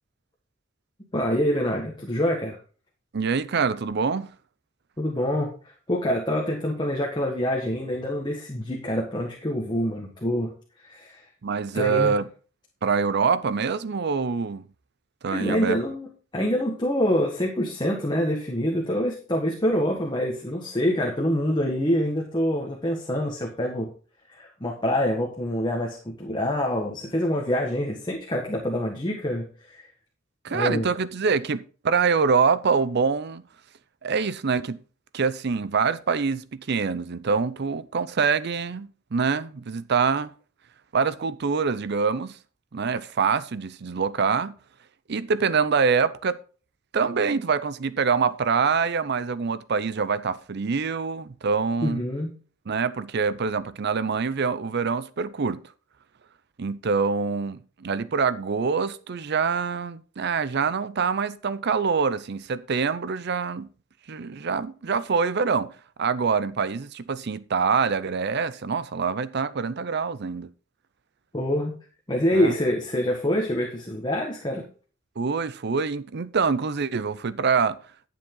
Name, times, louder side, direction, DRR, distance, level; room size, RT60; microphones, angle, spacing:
voice 1, 1.1-2.6 5.0-5.5 5.9-10.5 10.8-11.2 11.7-12.1 15.3-16.1 16.3-23.9 24.3-29.8 30.5-30.9 51.8-52.3 71.3-71.7 72.1-74.6, equal, 20° left, 1.6 m, -26 dB
voice 2, 3.1-4.3 11.4-12.3 12.8-14.7 15.2-15.8 30.4-33.4 34.0-34.8 35.1-40.3 40.9-42.4 42.7-44.6 45.1-46.4 46.9-52.0 52.7-55.6 56.6-63.7 64.1-65.7 66.0-70.5 72.3-72.6 75.2-77.8, right 5 dB, 55° right, 0.5 m, -25 dB
11.5 x 7.3 x 3.8 m
head